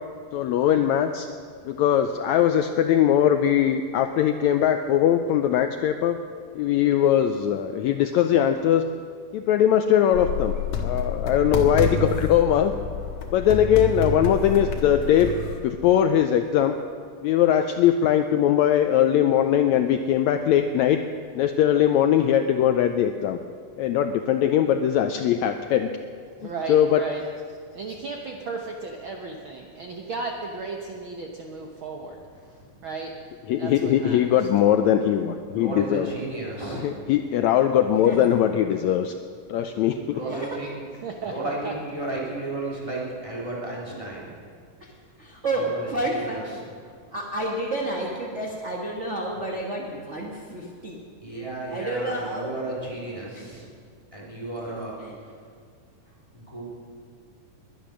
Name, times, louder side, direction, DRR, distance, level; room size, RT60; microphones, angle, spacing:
voice 1, 0.3-1.3 1.7-6.2 6.5-8.8 9.3-10.5 10.8-12.7 13.3-15.4 15.6-16.8 17.2-21.0 21.3-23.4 23.8-25.9 26.7-27.0 33.5-36.1 36.8-39.1 39.5-40.2, left 10 dB, 85° left, 7 dB, 1.6 m, -21 dB
sound 1, 10.1-15.6, left 4 dB, 65° left, 2.7 m, -29 dB
voice 2, 26.4-27.2 27.5-32.2 32.8-33.2 33.6-34.5 40.2-40.4 41.0-41.7, right 4 dB, 80° right, 1 dB, 1.1 m, -35 dB
voice 3, 35.5-36.9 40.1-40.8 41.2-44.3 45.5-46.6 51.2-53.7 54.1-55.3 56.3-56.6, right 2 dB, 10° right, -4 dB, 3.5 m, -33 dB
voice 4, 45.2-46.5 47.1-51.0 51.3-51.4 51.7-52.5 55.0-55.1, right 1 dB, 50° right, -2 dB, 0.8 m, -30 dB
20.5 x 10.5 x 6.3 m, 2.1 s
omnidirectional pair, 3.8 m